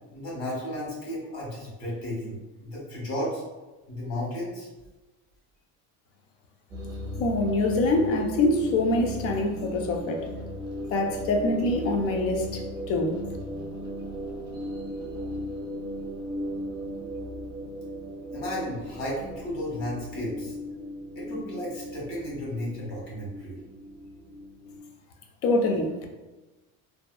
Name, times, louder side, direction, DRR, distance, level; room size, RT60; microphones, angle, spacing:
voice 1, 0.1-3.4 3.9-4.7 18.3-20.5 21.1-23.6, left 1 dB, 60° left, -5 dB, 1.3 m, -33 dB
sound 1, 6.7-24.8, equal, 10° right, 0.5 m, -37 dB
voice 2, 7.2-10.3 10.9-13.2 25.4-26.1, left 2 dB, 40° left, 3 dB, 0.4 m, -25 dB
2.6 x 2.2 x 2.3 m, 1.1 s
cardioid pair, 145°, 36 cm